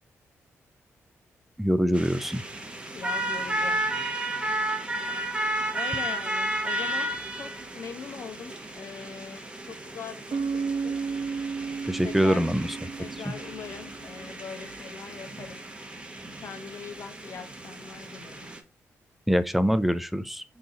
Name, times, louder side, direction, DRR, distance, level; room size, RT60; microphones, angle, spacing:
voice 1, 1.6-2.4 11.9-12.7 19.3-20.4, equal, 5° right, 0.4 m, -24 dB
sound 1, 1.9-18.6, right 1 dB, 20° right, 0.8 m, -33 dB
voice 2, 2.9-3.8 5.7-11.0 12.0-12.5 13.0-15.6 16.4-18.5, left 6 dB, 60° left, 0.8 m, -41 dB
Bass guitar, 10.3-14.1, right 5 dB, 65° right, 0.4 m, -33 dB
4.0 x 3.7 x 2.8 m
cardioid pair, 115°, 5 cm